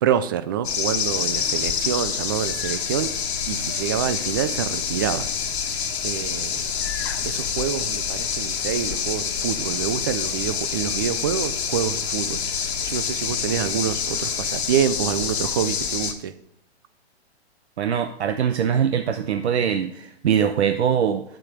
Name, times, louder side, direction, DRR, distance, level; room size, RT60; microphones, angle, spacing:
voice 1, 0.0-3.1 3.5-5.3 6.0-6.7 7.2-16.3, right 9 dB, 20° right, 13 dB, 0.3 m, -27 dB
sound 1, 0.6-16.1, left 7 dB, 70° left, 1.6 m, -27 dB
voice 2, 17.8-21.2, right 8 dB, 75° right, 8 dB, 0.9 m, -22 dB
9.7 x 7.4 x 4.9 m, 0.72 s
hypercardioid pair, 140°, 33 cm